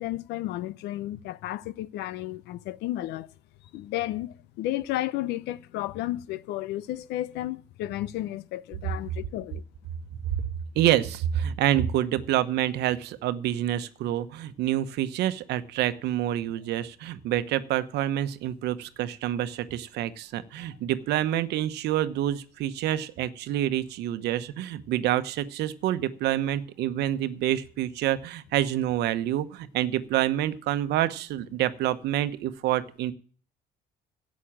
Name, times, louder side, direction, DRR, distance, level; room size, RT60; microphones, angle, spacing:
voice 1, 0.0-3.3 3.7-9.6, left 15 dB, 85° left, 0.7 m, -33 dB
voice 2, 10.8-33.1, right 12 dB, 80° right, 1.0 m, -27 dB
11.5 x 8.4 x 7.4 m
cardioid pair, 110°, 17 cm